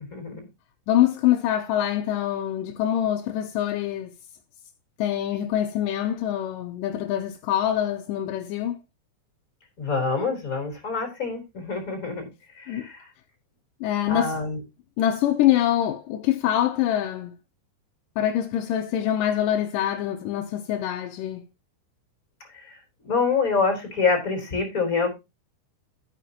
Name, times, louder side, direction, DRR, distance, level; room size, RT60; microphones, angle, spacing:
voice 1, 0.1-0.5 9.8-12.3 12.5-13.1 14.1-14.6 22.5-22.8 23.0-25.1, left 4 dB, 20° left, 4.3 m, -26 dB
voice 2, 0.9-4.1 5.0-8.8 12.7-12.8 13.8-14.4 15.0-17.3 18.2-21.4, left 11 dB, 80° left, 1.9 m, -24 dB
13.0 x 9.3 x 2.9 m
omnidirectional pair, 4.9 m